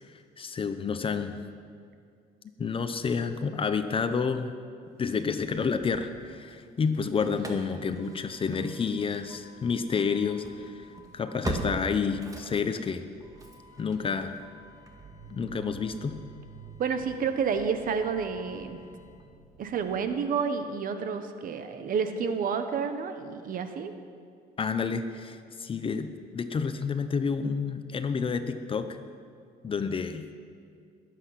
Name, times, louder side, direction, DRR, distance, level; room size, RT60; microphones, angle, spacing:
voice 1, 0.4-1.4 2.6-4.5 5.0-10.9 11.1-13.0 13.8-14.3 15.3-16.2 24.6-29.0 29.6-30.3, left 5 dB, 30° left, 9 dB, 0.8 m, -29 dB
Engine starting / Slam, 5.2-6.6 6.9-19.9, right 1 dB, 20° right, 1.9 m, -43 dB
voice 2, 16.8-18.8 19.6-23.9, right 6 dB, 55° right, 8 dB, 1.2 m, -30 dB
20.5 x 8.2 x 5.9 m, 2.2 s
cardioid pair, 110°, 17 cm